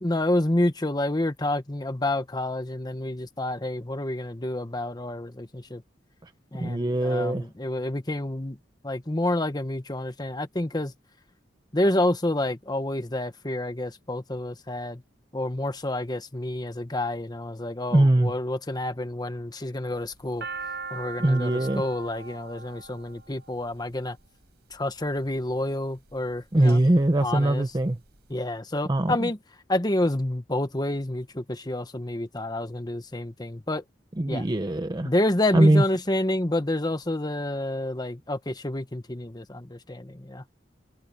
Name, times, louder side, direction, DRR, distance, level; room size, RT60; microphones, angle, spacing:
voice 1, 0.0-5.8 6.5-8.6 8.8-10.9 11.7-15.0 15.3-20.5 20.9-24.2 24.7-26.8 27.2-27.7 28.3-29.4 29.7-33.8 34.3-34.5 35.0-40.4, left 1 dB, 25° left, 1.2 m, -29 dB
voice 2, 6.6-7.4 17.9-18.3 21.2-21.8 26.5-28.0 28.9-29.3 34.2-35.1 35.5-35.8, right 1 dB, 25° right, 0.7 m, -21 dB
sound 1, 20.0-24.2 25.0-25.5 26.1-26.8 27.1-27.2 27.4-28.2, right 4 dB, 65° right, 7.1 m, -39 dB
head